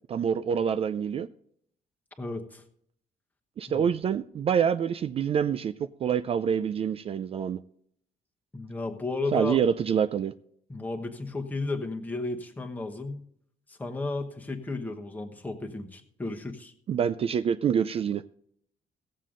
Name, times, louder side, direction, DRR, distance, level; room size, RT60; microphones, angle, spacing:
voice 1, 0.1-1.3 3.6-5.7 6.0-7.6 9.3-10.3 16.9-18.2, right 8 dB, 35° right, 0.3 m, -26 dB
voice 2, 2.2-2.6 3.7-3.8 8.5-9.6 10.7-13.3 13.7-16.7, left 3 dB, 10° left, 1.1 m, -33 dB
17.0 x 7.5 x 3.8 m
cardioid pair, 170°, 16 cm